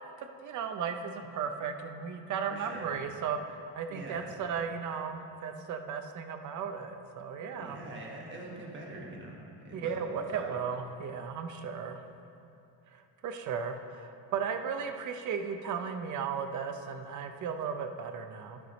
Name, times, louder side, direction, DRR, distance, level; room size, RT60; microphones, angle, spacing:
voice 1, 0.2-7.8 9.7-12.0 12.9-18.6, right 6 dB, 40° right, 6 dB, 0.6 m, -36 dB
voice 2, 2.5-3.0 3.9-4.4 7.6-10.0 10.3-10.5, right 2 dB, 25° right, -2 dB, 1.2 m, -44 dB
12.5 x 4.8 x 4.0 m, 2.7 s
cardioid pair, 170°, 45 cm